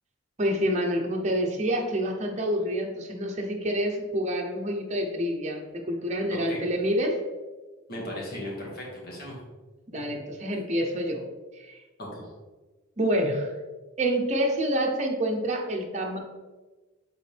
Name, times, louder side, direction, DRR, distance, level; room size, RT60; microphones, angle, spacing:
voice 1, 0.4-7.2 9.9-11.2 11.6-11.8 13.0-13.5 14.0-16.2, equal, 35° right, 1 dB, 0.8 m, -27 dB
voice 2, 6.3-6.6 7.9-9.4 12.0-12.3, left 1 dB, 45° left, -3 dB, 1.8 m, -36 dB
8.2 x 3.8 x 3.4 m, 1.2 s
head